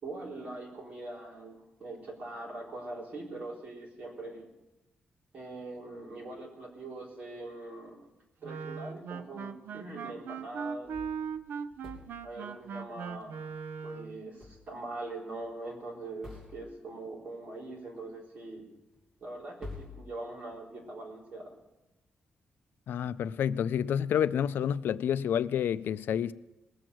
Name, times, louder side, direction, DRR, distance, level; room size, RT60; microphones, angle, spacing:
voice 1, 0.0-4.5 5.3-8.0 8.4-10.9 12.2-13.4 13.8-18.6 19.2-21.5, right 2 dB, 45° right, 3.9 m, -42 dB
Wind instrument woodwind instrument, 8.4-14.2, right 6 dB, 80° right, 0.6 m, -39 dB
sound 1, 10.8-12.4 14.4-15.1 15.4-15.5 16.2-17.0 18.9-19.0 19.6-20.8, left 3 dB, 5° right, 3.1 m, -49 dB
voice 2, 22.9-26.3, left 9 dB, 85° left, 0.4 m, -29 dB
20.0 x 7.7 x 6.2 m
wide cardioid pair, 170°, 3 cm